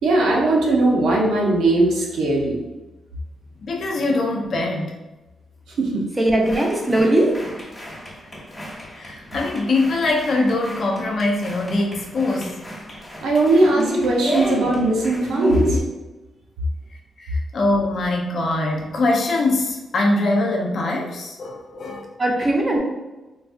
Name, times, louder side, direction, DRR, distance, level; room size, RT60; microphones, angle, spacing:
voice 1, 0.0-2.6 5.7-6.0 13.2-15.8, right 2 dB, 85° right, -2 dB, 0.8 m, -19 dB
voice 2, 3.6-5.0 8.9-12.6 17.2-22.1 22.4-22.5, left 2 dB, 55° left, 0 dB, 0.6 m, -23 dB
voice 3, 6.2-7.3 22.2-22.8, right 1 dB, 20° right, 0 dB, 0.7 m, -19 dB
sound 1, 6.4-15.8, equal, 20° left, 1.0 m, -31 dB
3.8 x 2.4 x 2.5 m, 1.1 s
cardioid pair, 110°, 0 cm